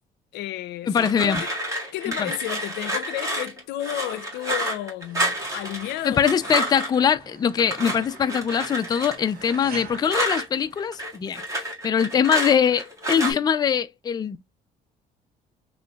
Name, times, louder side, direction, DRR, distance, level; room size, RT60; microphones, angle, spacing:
voice 1, 0.3-1.5 1.9-6.3, left 14 dB, 85° left, 0.5 m, -32 dB
voice 2, 0.9-1.4 2.2-2.3 6.0-14.4, left 7 dB, 25° left, 0.4 m, -22 dB
sound 1, 0.9-7.0 7.6-10.5 10.8-13.3, right 1 dB, 20° right, 1.9 m, -30 dB
sound 2, 5.0-11.3, right 6 dB, 60° right, 1.3 m, -46 dB
4.2 x 3.0 x 2.3 m
cardioid pair, 110°, 17 cm